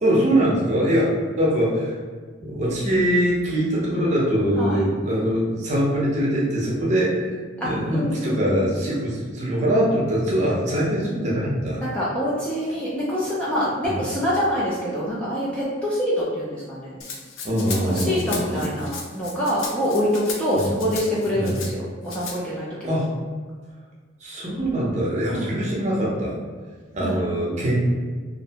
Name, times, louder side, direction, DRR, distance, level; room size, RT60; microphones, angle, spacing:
voice 1, 0.0-1.9 2.4-7.4 7.6-11.8 13.8-14.0 17.4-18.7 20.5-20.7 21.3-21.6 22.8-23.1 24.2-26.3 26.9-27.7, equal, 35° right, -5 dB, 0.6 m, -23 dB
voice 2, 7.6-8.6 11.8-17.0 17.7-23.0 25.3-25.5 27.0-27.2, equal, 5° left, -8 dB, 0.3 m, -26 dB
Rattle (instrument), 17.0-21.7 22.1-22.4, left 5 dB, 90° left, 0.4 m, -35 dB
2.6 x 2.1 x 2.7 m, 1.5 s
head